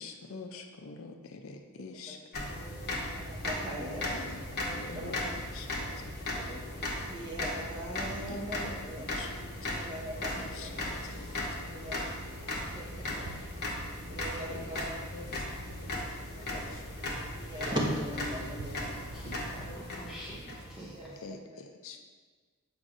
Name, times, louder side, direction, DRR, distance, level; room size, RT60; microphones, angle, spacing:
voice 1, 0.0-2.2 4.7-6.1 8.3-8.5 9.2-9.8 10.4-11.9 14.5-15.9 16.7-16.8 21.2-22.1, left 4 dB, 65° left, 4 dB, 0.5 m, -46 dB
sound 1, 2.3-21.1, left 1 dB, 45° left, 1.1 m, -37 dB
voice 2, 2.9-4.4 4.9-5.3 6.3-6.6 7.1-9.0 9.7-10.7 11.4-12.1 12.4-13.4 14.1-14.9 16.3-16.8 17.4-18.9 20.9-21.6, equal, 20° right, -5 dB, 1.2 m, -39 dB
sound 2, 11.3-11.4 12.6-12.7 13.3-14.6 15.1-15.6 16.6-16.7 17.9-18.0 18.6-19.9 20.4-21.0, right 4 dB, 55° right, 0.5 m, -50 dB
voice 3, 19.1-21.2, right 1 dB, ahead, -7 dB, 0.7 m, -46 dB
7.6 x 5.1 x 2.6 m, 1.5 s
head